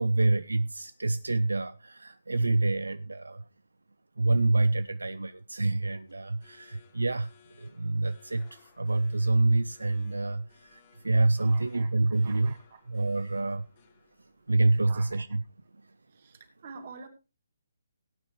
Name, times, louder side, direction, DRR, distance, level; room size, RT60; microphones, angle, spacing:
voice 1, 0.0-3.4 4.2-7.3 7.6-12.5 12.9-13.7 14.5-15.4, right 2 dB, 85° right, 15 dB, 0.5 m, -27 dB
sound 1, 5.7-15.3, left 9 dB, 40° left, 1.8 m, -63 dB
voice 2, 11.4-12.8 14.8-15.2 16.1-17.1, right 5 dB, 50° right, 7 dB, 2.4 m, -48 dB
18.0 x 9.0 x 3.2 m, 0.30 s
figure-of-eight pair, 145°, 0 cm